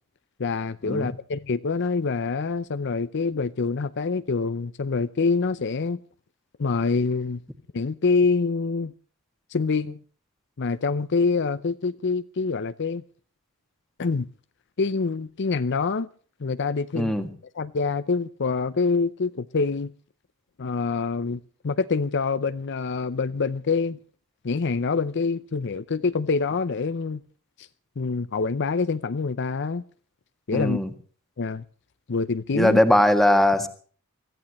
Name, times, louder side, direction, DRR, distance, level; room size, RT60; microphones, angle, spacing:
voice 1, 0.4-6.0 6.6-7.4 7.7-8.9 9.5-10.0 10.6-13.0 14.0-14.3 14.8-16.1 16.4-17.1 17.6-19.9 20.6-24.0 24.4-27.2 27.6-27.7 28.0-29.8 30.5-30.8 31.4-31.6 32.1-32.8, left 4 dB, 55° left, 0.6 m, -26 dB
voice 2, 17.0-17.3 30.5-30.9 32.5-33.7, left 1 dB, ahead, 1.8 m, -20 dB
24.5 x 14.5 x 3.1 m
head